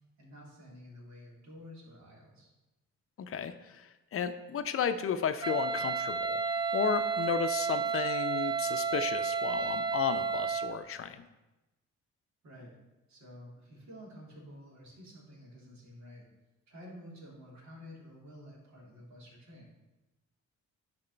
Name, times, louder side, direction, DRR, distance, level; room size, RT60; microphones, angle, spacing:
voice 1, 0.2-2.5 12.4-12.7 13.1-16.3 16.7-19.7, equal, 70° right, -4 dB, 3.1 m, -50 dB
voice 2, 3.2-6.4 6.7-11.2, left 7 dB, 45° left, 9 dB, 0.7 m, -33 dB
Wind instrument woodwind instrument, 5.4-10.8, right 5 dB, 15° right, 0.5 m, -31 dB
10.5 x 4.4 x 4.4 m, 1.0 s
cardioid pair, 90°, 30 cm